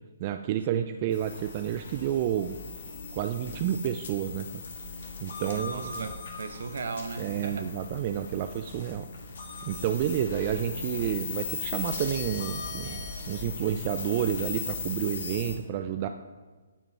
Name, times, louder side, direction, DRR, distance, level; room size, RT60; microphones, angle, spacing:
voice 1, 0.2-2.6 3.1-4.6 5.2-6.1 7.2-9.1 9.6-16.1, right 11 dB, 35° right, 8 dB, 0.3 m, -30 dB
sound 1, 1.1-15.6, left 4 dB, 60° left, 1.6 m, -38 dB
voice 2, 5.4-7.7, right 4 dB, 65° right, 9 dB, 0.8 m, -37 dB
9.1 x 4.4 x 4.1 m, 1.4 s
hypercardioid pair, 150°, 0 cm